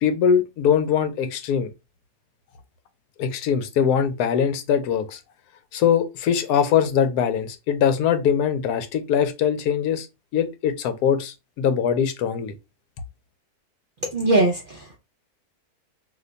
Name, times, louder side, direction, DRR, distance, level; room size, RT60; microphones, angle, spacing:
voice 1, 0.0-1.7 3.2-5.2 5.7-10.1 10.3-12.5, left 8 dB, 80° left, 1.1 m, -22 dB
voice 2, 14.1-15.0, right 2 dB, 65° right, 0.5 m, -21 dB
2.8 x 2.2 x 3.8 m
omnidirectional pair, 1.7 m